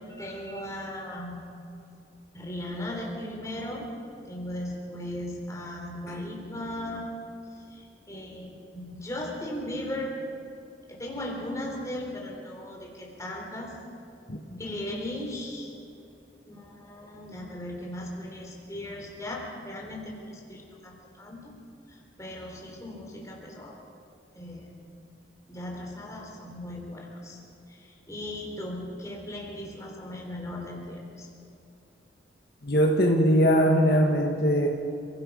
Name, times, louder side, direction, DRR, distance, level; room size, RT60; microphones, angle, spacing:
voice 1, 0.0-1.4 2.3-3.9 4.3-7.1 7.5-10.2 10.9-13.8 14.5-15.7 16.5-20.2 20.5-21.6 21.9-23.8 24.3-24.7 25.5-27.4 27.7-31.3, left 1 dB, 15° left, -1 dB, 3.6 m, -37 dB
voice 2, 32.6-34.7, equal, 55° left, 0 dB, 1.6 m, -21 dB
29.5 x 17.0 x 5.5 m, 2.6 s
head